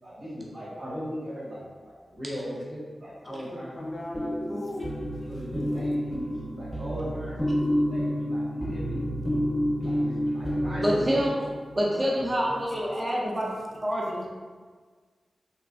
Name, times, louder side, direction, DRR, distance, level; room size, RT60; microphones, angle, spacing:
voice 1, 0.0-3.8 5.2-9.0 9.7-11.3 11.8-12.7, equal, 75° right, -9 dB, 1.2 m, -38 dB
voice 2, 3.2-5.4 12.4-12.5, left 1 dB, 55° left, 0 dB, 0.4 m, -38 dB
sound 1, 3.8-11.7, equal, 10° left, 0.8 m, -29 dB
voice 3, 10.8-11.4 11.8-13.5 13.8-14.3, equal, 30° right, -3 dB, 0.5 m, -26 dB
3.1 x 2.2 x 2.4 m, 1.5 s
cardioid pair, 55°, 0 cm